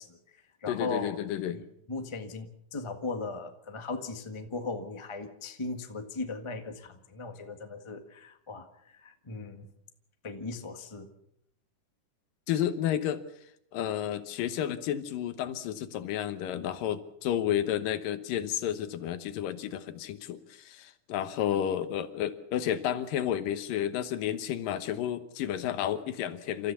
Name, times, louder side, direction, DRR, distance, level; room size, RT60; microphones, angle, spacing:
voice 1, 0.0-1.1 1.5-8.7 8.9-9.7 10.2-11.1, left 3 dB, 45° left, 6 dB, 0.3 m, -38 dB
voice 2, 0.7-1.6 12.5-13.2 13.7-26.7, left 10 dB, 85° left, 11 dB, 2.8 m, -31 dB
29.0 x 14.0 x 7.0 m, 0.74 s
omnidirectional pair, 3.8 m